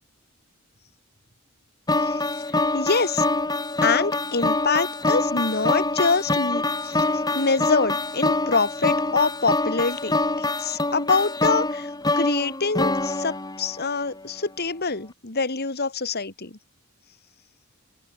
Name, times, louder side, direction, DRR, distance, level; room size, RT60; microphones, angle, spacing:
sound 1, 1.9-14.1, left 2 dB, 20° left, 3.4 m, -25 dB
voice 1, 2.7-3.2 3.8-7.0 7.3-11.9 12.2-16.5, left 4 dB, 50° left, 2.4 m, -25 dB
open air
head